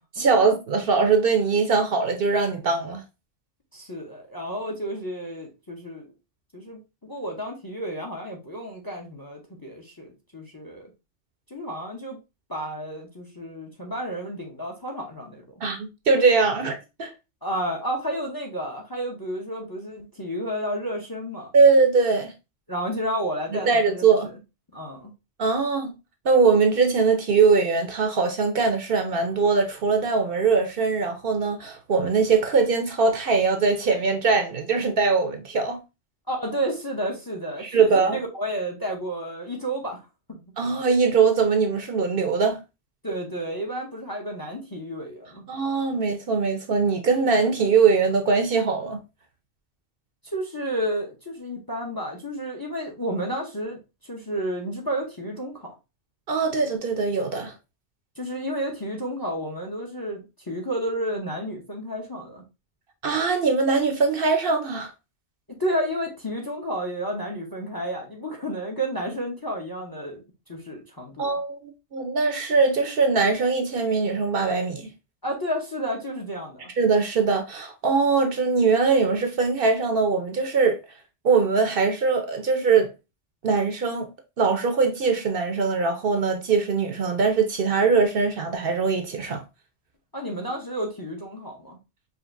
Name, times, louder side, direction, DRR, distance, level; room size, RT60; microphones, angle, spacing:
voice 1, 0.1-3.0 15.6-17.1 21.5-22.3 23.5-24.3 25.4-25.9 26.2-35.8 37.6-38.2 40.6-42.6 45.5-49.0 56.3-57.5 63.0-64.9 71.2-74.9 76.8-80.8 81.2-82.9 83.4-84.1 84.4-89.4, right 4 dB, 60° right, 0.7 m, -21 dB
voice 2, 3.7-6.1 6.5-10.9 11.5-12.2 12.5-15.4 17.4-21.5 22.7-24.1 24.7-25.1 36.3-40.0 40.3-40.4 43.0-45.4 50.2-53.8 54.1-55.7 58.2-62.4 65.6-70.2 70.5-71.3 75.2-76.7 90.1-91.8, equal, 25° left, 0.6 m, -31 dB
5.0 x 2.8 x 2.5 m
omnidirectional pair, 1.2 m